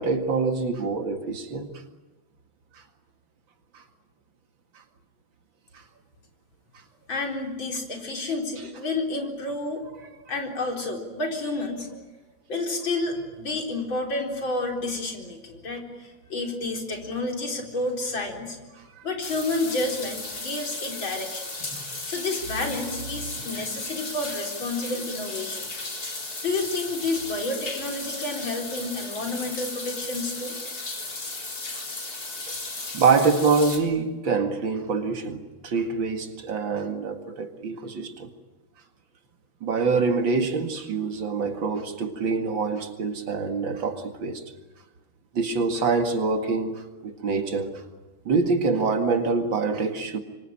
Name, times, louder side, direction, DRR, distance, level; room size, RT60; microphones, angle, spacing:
voice 1, 0.0-1.7 3.7-3.8 18.8-18.9 21.7-21.9 32.9-38.3 39.6-44.4 45.3-47.8 48.3-50.2, right 4 dB, 75° right, 2.8 m, -25 dB
voice 2, 7.1-9.8 10.3-11.9 12.5-18.6 19.0-21.5 22.0-25.6 26.4-30.5, left 2 dB, 80° left, 4.9 m, -30 dB
sound 1, 19.2-33.8, left 3 dB, 50° left, 4.3 m, -35 dB
26.0 x 24.5 x 8.9 m
omnidirectional pair, 2.1 m